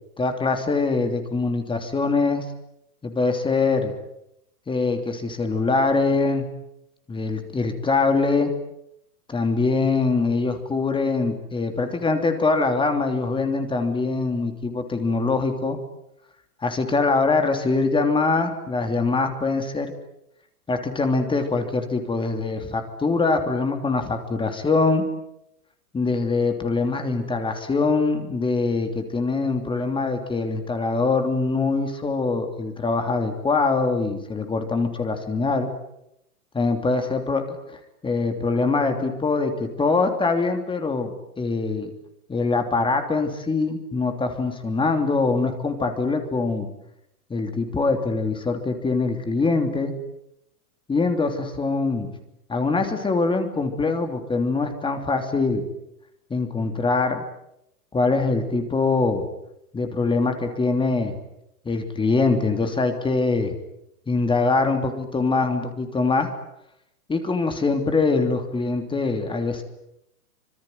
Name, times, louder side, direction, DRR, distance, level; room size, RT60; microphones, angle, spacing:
voice 1, 0.2-2.4 3.0-3.9 4.7-6.5 7.1-8.5 9.3-15.8 16.6-19.9 20.7-25.0 25.9-35.7 36.5-37.4 37.7-41.9 42.3-46.7 47.3-49.9 50.9-52.1 52.5-55.6 56.3-57.2 57.9-59.3 59.7-61.1 61.6-63.5 64.1-66.3 67.1-69.6, left 3 dB, 10° left, 6 dB, 3.1 m, -23 dB
26.0 x 23.5 x 9.4 m, 0.81 s
hypercardioid pair, 125°, 45 cm